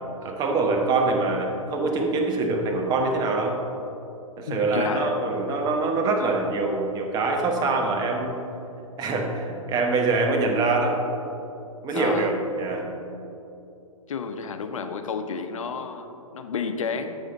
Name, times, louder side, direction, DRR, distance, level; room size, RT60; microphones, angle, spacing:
voice 1, 0.2-3.6 4.4-8.4 9.0-11.0 11.8-12.9, right 3 dB, 20° right, 1 dB, 1.2 m, -24 dB
voice 2, 4.5-5.2 11.9-12.3 14.1-17.2, left 5 dB, 65° left, 7 dB, 0.9 m, -31 dB
10.0 x 7.5 x 4.0 m, 2.9 s
figure-of-eight pair, 120°, 18 cm